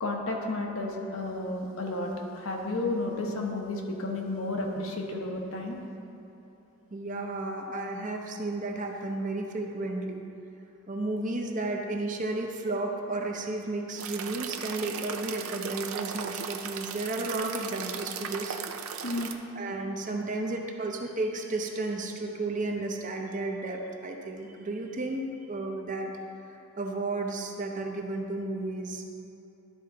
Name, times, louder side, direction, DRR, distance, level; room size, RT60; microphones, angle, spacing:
voice 1, 0.0-5.8 19.0-19.3, left 2 dB, 75° left, 0 dB, 1.0 m, -32 dB
voice 2, 6.9-10.3 10.9-19.1 19.6-26.1 26.8-29.1, right 2 dB, 35° right, 2 dB, 0.6 m, -33 dB
sound 1, 14.0-19.3, right 7 dB, 85° right, 0.5 m, -37 dB
11.5 x 4.5 x 3.8 m, 2.9 s
head